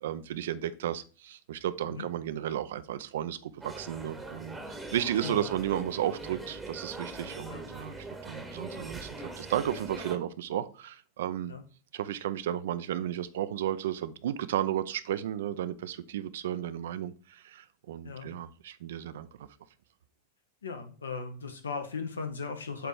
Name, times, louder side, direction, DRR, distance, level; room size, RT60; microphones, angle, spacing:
voice 1, 0.0-11.5 11.9-19.5, right 11 dB, 60° right, 14 dB, 0.4 m, -33 dB
sound 1, 3.6-10.2, right 2 dB, 5° right, 1.1 m, -42 dB
voice 2, 20.6-22.9, left 5 dB, 70° left, 7 dB, 1.0 m, -37 dB
7.9 x 2.9 x 4.8 m, 0.37 s
figure-of-eight pair, 90°, 0 cm